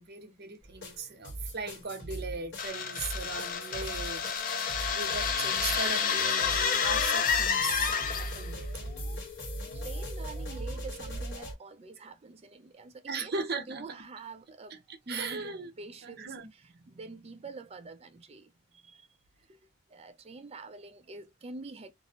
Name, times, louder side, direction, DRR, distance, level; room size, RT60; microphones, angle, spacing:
voice 1, 0.0-8.8 13.1-13.8 14.7-15.7 16.0-16.5, right 4 dB, 55° right, 0.8 m, -38 dB
sound 1, 0.6-11.5, equal, 65° left, 1.2 m, -40 dB
sound 2, 2.6-8.5, left 6 dB, 45° left, 0.5 m, -29 dB
voice 2, 9.7-13.3 13.7-19.1 19.5-19.6 19.9-21.9, right 3 dB, 30° right, 0.4 m, -46 dB
2.7 x 2.0 x 2.7 m
head